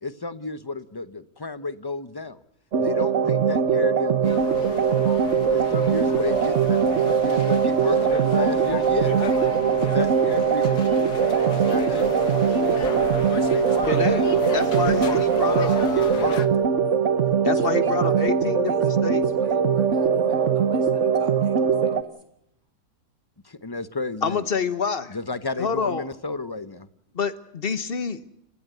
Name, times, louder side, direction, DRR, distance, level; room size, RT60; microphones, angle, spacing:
voice 1, 0.0-2.4 2.8-4.5 5.5-9.2 9.8-10.9 11.5-12.8 13.2-14.3 14.8-16.5 23.4-24.4 25.1-26.9, left 3 dB, 20° left, 13 dB, 0.8 m, -32 dB
sound 1, 2.7-22.0, right 7 dB, 50° right, 1.3 m, -21 dB
sound 2, 4.2-16.5, left 7 dB, 85° left, 1.9 m, -35 dB
voice 2, 13.9-14.2 14.5-15.7 17.4-19.2 24.2-25.2 25.6-26.1 27.1-28.3, left 5 dB, 40° left, 13 dB, 1.2 m, -27 dB
voice 3, 17.5-22.1, right 1 dB, 30° right, 6 dB, 3.2 m, -40 dB
29.5 x 15.5 x 8.0 m, 0.79 s
omnidirectional pair, 1.7 m